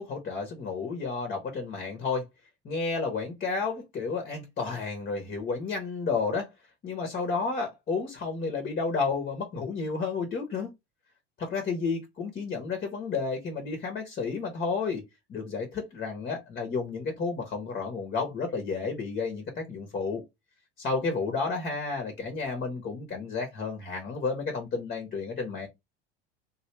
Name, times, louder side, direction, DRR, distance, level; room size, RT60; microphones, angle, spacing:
voice 1, 0.0-2.3 2.6-6.5 6.8-10.7 11.4-15.0 15.3-20.2 20.8-25.7, left 4 dB, 30° left, 1.1 m, -31 dB
3.2 x 2.5 x 3.0 m
hypercardioid pair, 80°, 29 cm